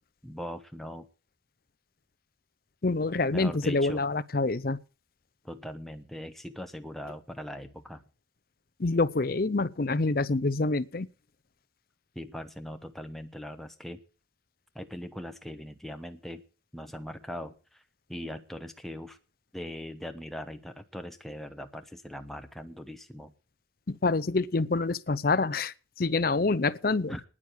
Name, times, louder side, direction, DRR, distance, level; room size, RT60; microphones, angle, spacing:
voice 1, 0.2-1.1 3.3-4.0 5.4-8.0 12.1-14.0 14.7-16.4 16.7-17.8 18.1-19.2 19.5-23.3 27.1-27.2, equal, ahead, 0.9 m, -40 dB
voice 2, 2.8-4.8 8.8-11.1 23.9-27.2, left 3 dB, 50° left, 0.6 m, -27 dB
9.9 x 9.3 x 8.7 m
head